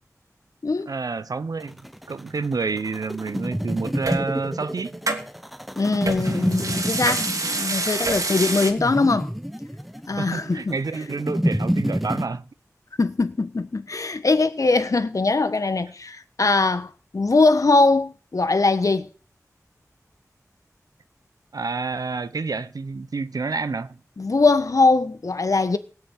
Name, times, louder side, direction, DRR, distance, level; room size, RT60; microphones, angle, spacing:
voice 1, 0.9-1.8 2.1-5.0 10.2-12.5 21.5-24.0, right 4 dB, 85° right, 0.9 m, -29 dB
sound 1, 1.6-12.3, equal, ahead, 0.9 m, -28 dB
sound 2, 4.1-4.2 5.1-5.2 6.1-8.7, right 2 dB, 65° right, 2.5 m, -26 dB
voice 2, 5.8-9.3 10.1-10.8 13.0-19.1 24.2-25.8, left 3 dB, 65° left, 1.4 m, -21 dB
17.5 x 6.2 x 9.1 m
wide cardioid pair, 60°, 6 cm